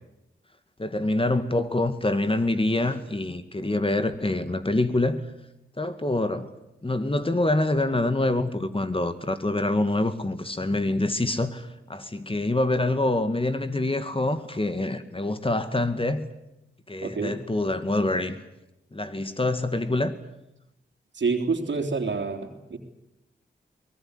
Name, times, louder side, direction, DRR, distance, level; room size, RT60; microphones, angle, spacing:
voice 1, 0.8-5.3 5.8-6.5 6.8-16.3 16.9-18.4 18.9-20.1, left 2 dB, 25° left, 2.3 m, -26 dB
voice 2, 17.0-17.4 21.1-22.8, right 4 dB, 65° right, 3.5 m, -27 dB
23.0 x 19.5 x 9.8 m
supercardioid pair, 40°, 20 cm